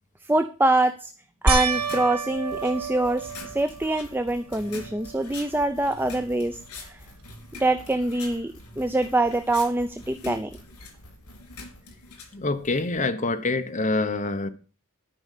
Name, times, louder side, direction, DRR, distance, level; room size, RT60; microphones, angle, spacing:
voice 1, 0.3-1.1 1.4-6.6 6.8-7.0 7.5-10.5, right 2 dB, 10° right, 0.5 m, -24 dB
sound 1, 1.5-4.1 4.7-5.2 5.6-5.7 8.9-9.0, right 4 dB, 80° right, 2.9 m, -28 dB
sound 2, 1.6-13.1, left 3 dB, 85° left, 3.6 m, -45 dB
sound 3, 2.3-11.8, equal, 65° left, 5.8 m, -50 dB
voice 2, 12.3-14.5, left 3 dB, 35° left, 1.1 m, -26 dB
12.5 x 5.3 x 8.3 m
head